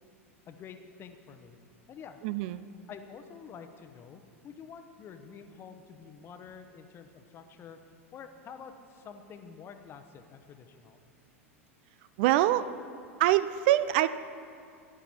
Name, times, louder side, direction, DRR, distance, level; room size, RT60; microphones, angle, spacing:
voice 1, 0.5-1.6 1.9-2.2 2.9-7.8 8.1-11.0, left 6 dB, 30° left, 8 dB, 0.9 m, -48 dB
voice 2, 2.2-2.6 12.2-12.7 13.2-14.1, right 14 dB, 50° right, 14 dB, 0.3 m, -24 dB
13.5 x 10.0 x 4.3 m, 2.4 s
figure-of-eight pair, 85°, 8 cm